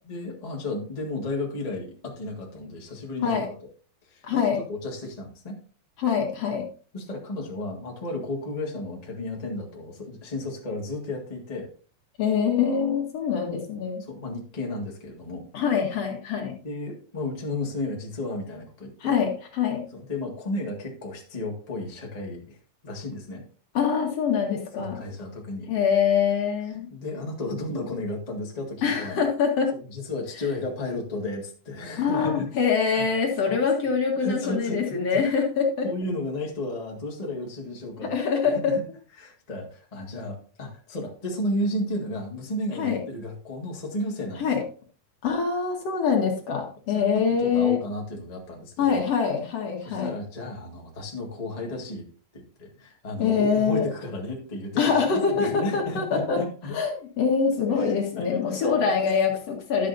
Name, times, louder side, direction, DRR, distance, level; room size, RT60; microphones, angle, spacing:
voice 1, 0.0-3.4 4.1-4.2 4.7-5.6 6.9-11.7 14.0-15.5 16.4-19.2 19.9-22.6 22.8-23.4 24.8-25.7 26.9-29.2 29.7-32.5 32.9-33.0 33.5-33.6 34.1-35.2 35.8-38.1 38.5-38.8 39.2-44.5 47.1-49.0 49.8-52.1 52.3-56.7 57.8-59.1, left 1 dB, 30° left, -1 dB, 0.7 m, -33 dB
voice 2, 4.2-4.6 6.0-6.7 12.2-14.0 15.5-16.5 19.0-19.8 23.7-25.0 25.7-26.9 28.8-29.8 32.0-35.9 38.0-38.7 42.8-43.0 44.4-44.6 45.2-47.8 48.8-50.1 53.2-53.8 54.8-56.4 56.7-59.9, left 6 dB, 55° left, 1 dB, 2.2 m, -24 dB
12.0 x 7.5 x 2.6 m, 0.41 s
omnidirectional pair, 4.2 m